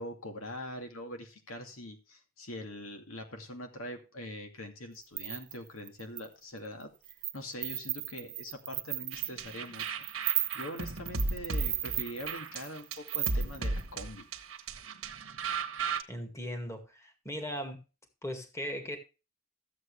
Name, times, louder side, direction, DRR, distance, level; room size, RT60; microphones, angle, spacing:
voice 1, 0.0-6.9 7.3-10.0 10.3-14.3, left 1 dB, 90° left, 2.4 m, -43 dB
sound 1, 5.0-6.3 6.8-7.4 7.6-13.8, right 13 dB, 40° right, 0.8 m, -35 dB
sound 2, 9.1-16.0, right 3 dB, 80° right, 1.3 m, -35 dB
voice 2, 16.1-17.8 18.2-19.0, equal, 15° left, 2.0 m, -38 dB
14.0 x 8.0 x 3.3 m
head